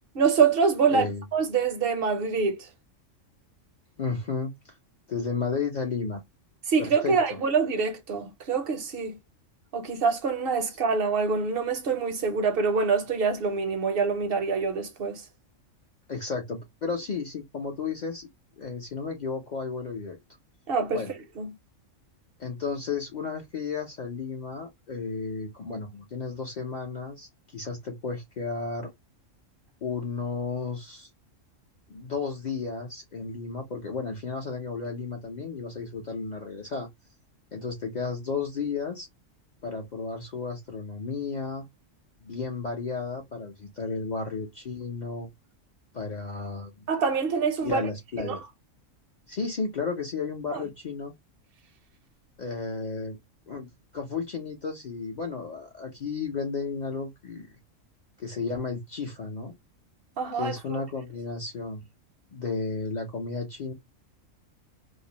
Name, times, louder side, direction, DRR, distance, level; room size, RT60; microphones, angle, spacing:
voice 1, 0.1-1.1 1.3-2.7 6.7-9.2 9.7-15.2 20.7-21.0 21.4-21.5 46.9-47.8 48.2-48.4 50.5-50.6 60.2-60.8, right 5 dB, 60° right, 0.6 m, -25 dB
voice 2, 0.9-1.2 4.0-4.7 5.1-6.2 6.8-7.4 16.1-18.3 18.6-20.2 20.9-21.1 22.4-28.9 29.8-31.1 31.9-36.9 37.5-39.1 39.6-41.6 42.2-45.3 45.9-46.8 47.6-48.4 49.3-51.1 52.4-53.2 53.5-53.7 53.9-57.5 58.2-59.5 60.3-61.8 62.3-63.7, left 4 dB, 55° left, 0.5 m, -33 dB
2.5 x 2.0 x 2.8 m
omnidirectional pair, 1.3 m